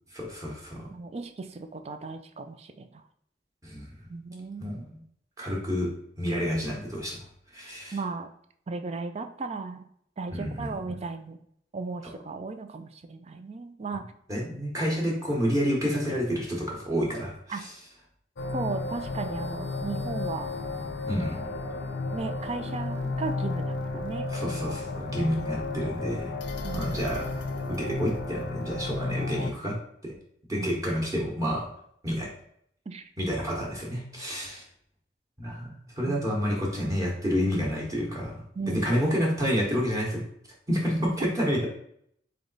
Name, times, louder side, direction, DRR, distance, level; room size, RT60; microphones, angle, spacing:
voice 1, 0.1-0.8 3.6-3.9 4.6-5.0 5.4-7.2 7.5-8.0 10.3-11.0 14.3-17.7 21.1-21.4 24.3-26.3 26.7-27.3 27.7-29.7 30.0-30.1 30.5-31.7 32.0-32.3 33.2-34.6 35.4-38.4 38.7-40.2 40.7-41.7, equal, 20° right, -3 dB, 1.1 m, -29 dB
voice 2, 0.9-3.0 4.1-4.8 7.9-8.3 8.7-9.8 10.2-11.4 11.7-14.0 17.5-17.6 18.5-20.5 22.1-24.3 26.6-26.9 30.5-30.7 32.9-33.1 36.1-36.3 38.6-38.9, right 3 dB, 35° right, 8 dB, 0.4 m, -36 dB
sound 1, 18.4-29.5, left 3 dB, 80° left, 0.6 m, -33 dB
3.9 x 3.4 x 3.9 m, 0.68 s
head